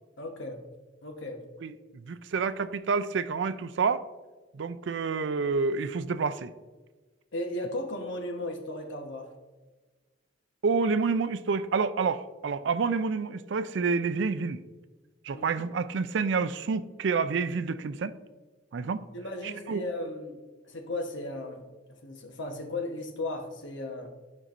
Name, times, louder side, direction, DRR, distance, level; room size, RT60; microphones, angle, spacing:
voice 1, 0.2-0.6 1.0-1.4 7.3-9.3 15.3-15.6 19.1-20.4 20.6-21.6 22.0-24.1, left 1 dB, 75° left, 3 dB, 1.1 m, -36 dB
voice 2, 2.1-4.0 4.5-6.5 10.6-14.6 15.2-18.1 18.7-19.0 19.7-19.8, right 5 dB, 65° right, 12 dB, 0.4 m, -28 dB
12.0 x 5.4 x 2.5 m, 1.3 s
head